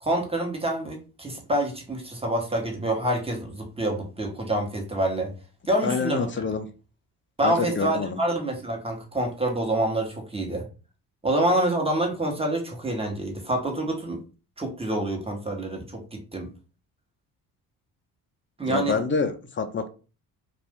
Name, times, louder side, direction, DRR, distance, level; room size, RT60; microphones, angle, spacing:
voice 1, 0.0-5.3 5.7-6.3 7.4-10.7 11.2-14.2 14.6-16.5 18.6-19.0, right 1 dB, 15° right, 2 dB, 1.2 m, -27 dB
voice 2, 5.8-6.7 7.4-8.2 18.6-19.9, left 5 dB, 30° left, 7 dB, 0.6 m, -27 dB
2.6 x 2.5 x 3.5 m, 0.34 s
supercardioid pair, 60°, 40 cm